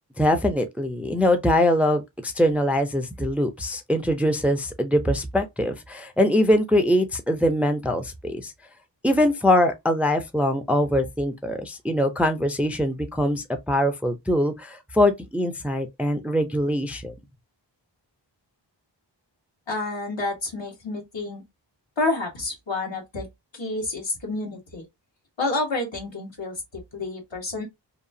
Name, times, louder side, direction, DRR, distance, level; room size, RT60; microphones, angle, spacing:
voice 1, 0.2-8.5 9.0-17.1, left 1 dB, 5° right, 0.4 m, -23 dB
voice 2, 19.7-21.4 22.0-23.3 23.5-24.8 25.4-27.6, left 2 dB, 75° left, 1.4 m, -29 dB
2.8 x 2.3 x 2.6 m
wide cardioid pair, 55°, 45 cm